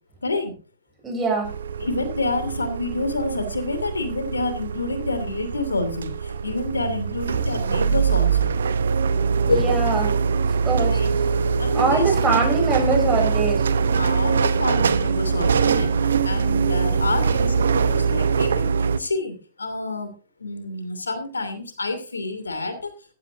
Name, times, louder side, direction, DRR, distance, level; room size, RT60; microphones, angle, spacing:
voice 1, 0.2-0.5 1.8-8.5 9.5-9.6 10.8-11.1 11.6-12.3 14.0-18.7 19.0-20.1 20.4-22.9, left 2 dB, 85° left, 9 dB, 2.7 m, -28 dB
voice 2, 1.0-1.5 9.5-10.1 10.6-11.0 11.7-13.7, right 3 dB, 20° right, 2 dB, 6.8 m, -23 dB
sound 1, 1.4-19.0, right 6 dB, 75° right, 0.8 m, -23 dB
15.0 x 12.0 x 2.6 m, 0.35 s
figure-of-eight pair, 105°, 0 cm